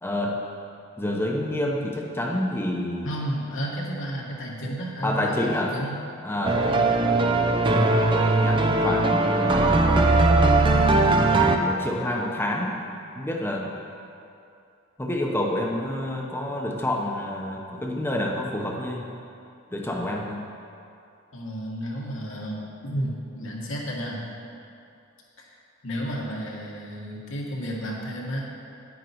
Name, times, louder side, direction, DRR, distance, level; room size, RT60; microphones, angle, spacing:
voice 1, 0.0-0.4 1.0-3.1 5.0-5.7 6.2-6.8 7.4-9.9 11.6-12.9 13.1-13.7 15.0-19.1 19.7-20.4, left 1 dB, 10° left, -1 dB, 0.9 m, -28 dB
voice 2, 3.0-5.9 6.7-6.9 21.3-24.2 25.4-25.5 25.8-28.5, equal, 65° left, -3 dB, 1.9 m, -32 dB
sound 1, 6.4-11.6, right 2 dB, 25° right, 0.6 m, -20 dB
10.0 x 9.3 x 4.6 m, 2.6 s
head